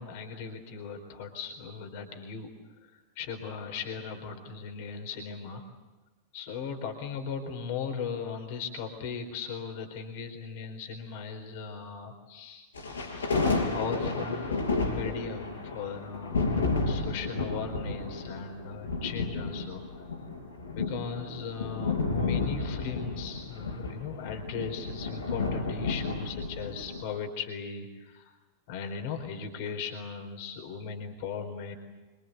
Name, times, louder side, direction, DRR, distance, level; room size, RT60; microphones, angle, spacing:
voice 1, 0.0-2.5 2.8-5.6 6.3-12.7 13.7-19.8 20.7-28.3 28.7-31.7, left 6 dB, 50° left, 5 dB, 4.2 m, -38 dB
sound 1, 12.7-27.0, left 3 dB, 70° left, 5.9 m, -32 dB
26.0 x 25.5 x 8.2 m, 1.2 s
figure-of-eight pair, 90°, 0 cm